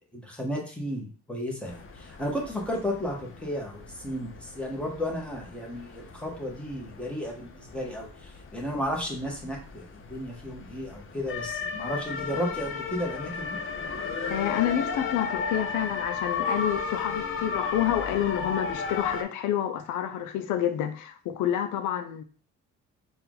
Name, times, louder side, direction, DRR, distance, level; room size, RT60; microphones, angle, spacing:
voice 1, 0.1-13.6, equal, 5° left, 1.4 m, -33 dB
sound 1, 1.6-19.2, left 5 dB, 45° left, 0.7 m, -35 dB
voice 2, 14.3-22.2, left 11 dB, 85° left, 0.5 m, -28 dB
4.2 x 2.6 x 3.8 m
cardioid pair, 90°, 30 cm